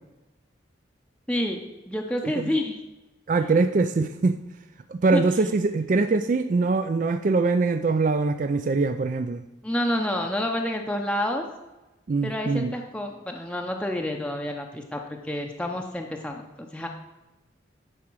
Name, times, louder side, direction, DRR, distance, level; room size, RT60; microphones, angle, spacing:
voice 1, 1.3-1.6 1.9-2.8 5.1-5.2 9.6-11.5 12.2-16.4 16.7-16.9, left 1 dB, 5° left, 1 dB, 0.6 m, -28 dB
voice 2, 3.3-4.4 4.9-9.4 12.1-12.7, right 3 dB, 40° right, 9 dB, 0.3 m, -23 dB
10.5 x 4.9 x 6.1 m, 1.1 s
head